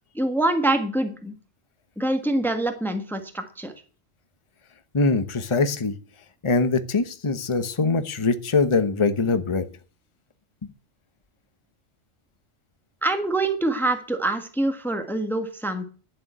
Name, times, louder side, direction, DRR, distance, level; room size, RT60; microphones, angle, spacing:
voice 1, 0.1-1.3 2.0-3.7 13.0-15.8, right 2 dB, ahead, 6 dB, 1.4 m, -25 dB
voice 2, 4.9-5.9 6.4-9.7, left 3 dB, 25° left, 10 dB, 1.0 m, -22 dB
11.5 x 7.0 x 7.9 m, 0.39 s
omnidirectional pair, 1.3 m